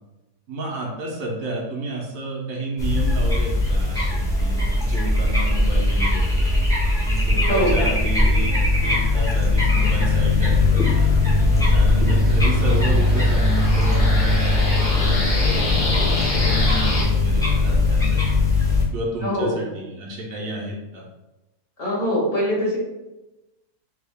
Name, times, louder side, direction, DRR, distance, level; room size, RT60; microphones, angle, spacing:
voice 1, 0.5-6.6 7.0-11.1 11.7-18.4 18.9-21.0, right 1 dB, 65° right, -1 dB, 1.1 m, -31 dB
sound 1, 2.8-18.8, left 2 dB, 5° left, 0.5 m, -19 dB
voice 2, 7.5-7.9 19.2-19.5 21.8-22.8, equal, 60° left, -5 dB, 1.5 m, -22 dB
sound 2, 10.4-17.0, left 1 dB, 90° left, 1.5 m, -28 dB
3.5 x 2.3 x 3.4 m, 1.0 s
omnidirectional pair, 1.6 m